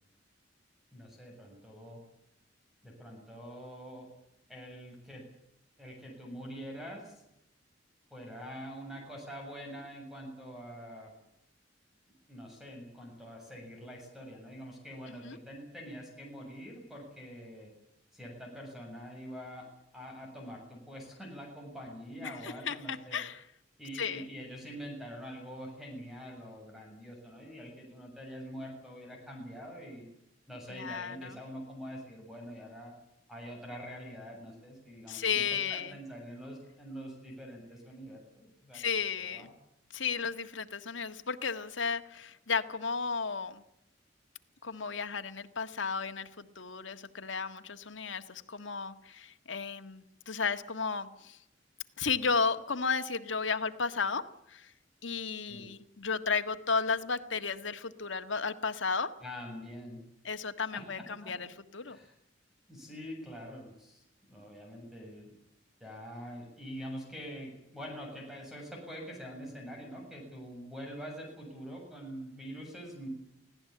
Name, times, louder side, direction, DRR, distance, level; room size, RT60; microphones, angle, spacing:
voice 1, 0.9-2.0 2.8-4.1 4.5-5.2 5.8-7.2 8.1-11.1 12.3-17.7 18.1-19.6 19.9-23.2 23.8-30.1 30.5-32.9 33.3-38.8 39.2-39.5 55.5-55.7 59.2-60.0 60.7-61.3 61.9-62.1 62.7-64.0 64.3-65.3 65.8-73.1, equal, ahead, 1 dB, 7.5 m, -45 dB
voice 2, 22.2-23.4 24.0-24.3 30.7-31.4 35.1-35.9 38.7-39.5 39.9-43.6 44.6-51.4 52.0-54.2 54.5-54.7 55.0-59.1 60.2-61.0 61.3-61.5 61.7-62.0, left 5 dB, 90° left, 8 dB, 1.6 m, -33 dB
25.0 x 17.0 x 8.6 m, 0.81 s
head